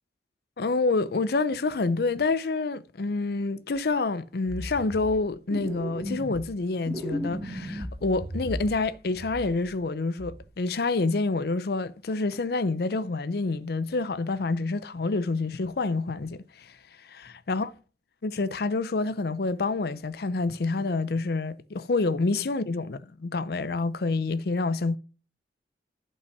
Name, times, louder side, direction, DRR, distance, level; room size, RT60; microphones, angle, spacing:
voice 1, 0.6-16.7 17.0-17.7 18.2-25.0, left 3 dB, 60° left, 0.6 m, -28 dB
sound 1, 3.8-3.9 4.5-5.2 5.5-6.5 6.8-8.9 9.1-9.8 10.2-10.4, equal, ahead, 2.7 m, -36 dB
11.5 x 5.5 x 5.8 m
head